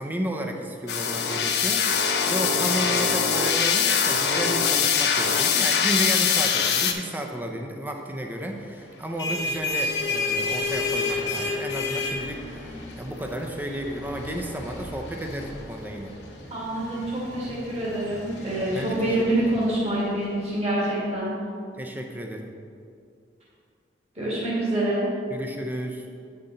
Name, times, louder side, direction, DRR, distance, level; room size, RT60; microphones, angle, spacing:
voice 1, 0.0-16.1 18.7-19.7 21.8-22.5 25.3-26.1, right 1 dB, 10° right, 3 dB, 0.5 m, -32 dB
sound 1, 0.9-6.9, left 6 dB, 65° left, 0.6 m, -22 dB
sound 2, 8.9-20.2, left 3 dB, 85° left, 1.6 m, -32 dB
voice 2, 16.5-21.3 24.1-25.1, right 1 dB, 35° right, -7 dB, 1.8 m, -26 dB
8.5 x 5.8 x 3.9 m, 2.4 s
head